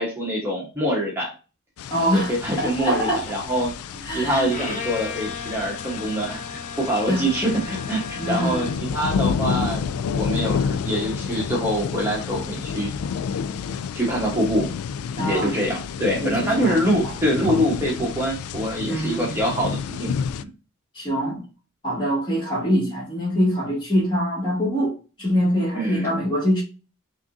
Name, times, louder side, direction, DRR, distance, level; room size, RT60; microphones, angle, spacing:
voice 1, 0.0-1.3 2.1-3.7 4.1-12.9 13.9-14.7 15.1-20.2 25.7-26.1, equal, 10° right, 1.1 m, -25 dB
sound 1, 1.8-20.4, left 6 dB, 75° left, 0.3 m, -30 dB
voice 2, 1.9-2.3 2.6-3.2 4.1-4.5 7.1-7.2 8.2-8.7 15.2-15.5 16.2-16.8 17.0-17.1 18.9-19.3 20.9-21.4 21.8-26.6, equal, 20° left, 2.3 m, -24 dB
Bowed string instrument, 4.5-9.0, left 4 dB, 35° left, 0.7 m, -35 dB
5.8 x 2.7 x 2.6 m
head